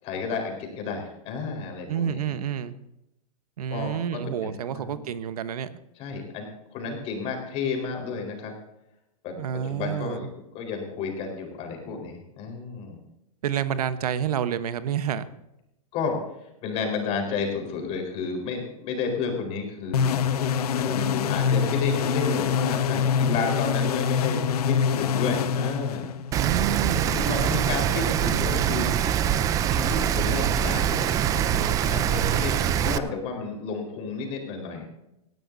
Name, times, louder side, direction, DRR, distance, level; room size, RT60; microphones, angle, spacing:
voice 1, 0.0-2.2 3.7-5.1 6.0-8.5 9.2-13.0 15.9-16.2 16.6-20.2 20.8-24.4 24.7-26.1 27.1-28.9 29.7-31.1 31.3-34.8, left 5 dB, 30° left, 2 dB, 4.3 m, -32 dB
voice 2, 1.9-2.8 3.6-5.7 9.4-10.3 13.4-15.2 26.3-27.2, right 9 dB, 75° right, 12 dB, 1.0 m, -29 dB
sound 1, 19.9-26.4, left 7 dB, 75° left, 1.2 m, -25 dB
Rain, 26.3-33.0, right 9 dB, 15° right, 0.5 m, -24 dB
18.5 x 16.0 x 2.7 m, 0.88 s
hypercardioid pair, 150°, 19 cm